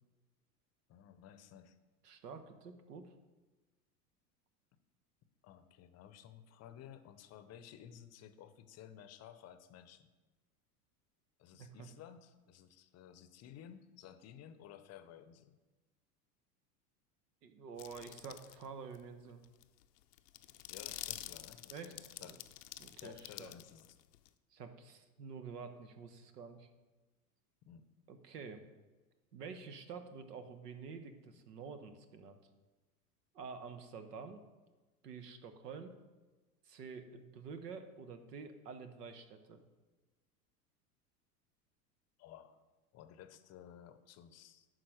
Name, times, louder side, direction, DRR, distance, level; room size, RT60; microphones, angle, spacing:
voice 1, 0.9-1.8 5.4-10.1 11.4-15.6 20.7-22.4 23.0-24.0 27.7-27.8 42.2-42.6 42.9-44.7, left 9 dB, 35° left, 11 dB, 0.6 m, -55 dB
voice 2, 2.0-3.1 11.6-11.7 17.4-19.4 21.7-22.4 22.8-23.5 24.5-26.7 28.1-28.6 29.3-32.4 33.3-34.4 35.0-35.9 36.7-39.6, right 5 dB, 85° right, 9 dB, 1.0 m, -49 dB
sound 1, 17.8-18.6 18.9-19.0 19.4-24.3, left 13 dB, 85° left, 0.6 m, -48 dB
9.6 x 3.9 x 6.4 m, 1.2 s
hypercardioid pair, 90°, 47 cm